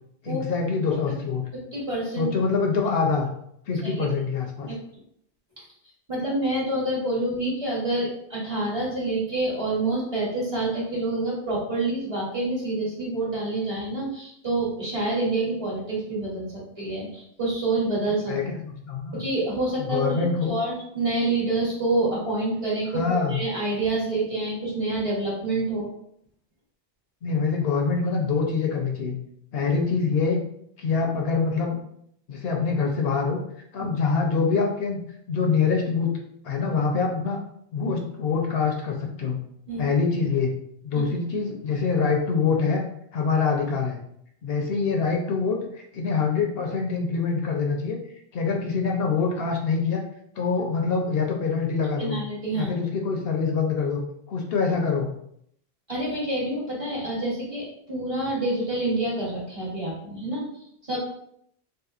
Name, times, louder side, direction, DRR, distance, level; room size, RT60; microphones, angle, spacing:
voice 1, 0.2-1.4 2.2-3.3 3.7-4.7 18.3-19.2 19.8-20.5 22.9-23.4 27.2-29.2 29.5-30.4 30.8-31.8 32.3-33.4 33.7-35.0 35.3-36.1 36.4-37.4 37.7-39.4 39.8-40.5 40.8-42.8 43.1-44.0 44.4-48.0 48.3-50.0 50.4-52.2 52.5-54.0 54.3-55.1, left 5 dB, 70° left, 1 dB, 0.8 m, -25 dB
voice 2, 1.7-2.3 3.8-4.1 4.7-4.8 6.1-18.3 19.1-25.9 33.8-33.9 39.7-39.8 40.9-41.0 52.0-52.7 55.9-60.4 60.9-61.0, right 2 dB, 35° right, -6 dB, 1.0 m, -27 dB
3.5 x 2.7 x 2.4 m, 0.71 s
omnidirectional pair, 1.1 m